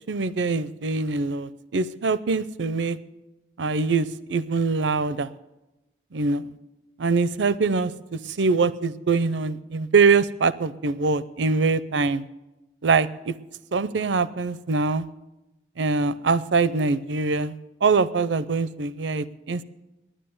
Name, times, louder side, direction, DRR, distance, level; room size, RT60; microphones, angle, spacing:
voice 1, 0.1-3.0 3.6-5.3 6.1-6.5 7.0-7.9 8.4-12.2 12.8-13.3 13.7-15.1 15.8-17.6 17.8-19.6, right 4 dB, 90° right, 17 dB, 0.6 m, -23 dB
10.0 x 10.0 x 9.3 m, 0.99 s
head